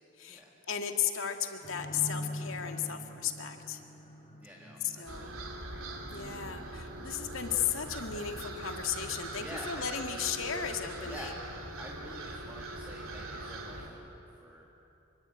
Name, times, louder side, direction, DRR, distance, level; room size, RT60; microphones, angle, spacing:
voice 1, 0.7-3.8 4.8-5.3 6.1-11.3, left 8 dB, 75° left, 5 dB, 2.1 m, -35 dB
sound 1, 1.6-6.6, left 1 dB, 25° left, 3.7 m, -44 dB
voice 2, 4.4-5.9 9.4-10.1 11.0-11.4 11.8-14.7, equal, 10° right, -2 dB, 2.2 m, -48 dB
sound 2, 5.1-13.9, right 1 dB, 90° right, 2.9 m, -42 dB
26.0 x 24.0 x 8.8 m, 2.9 s
head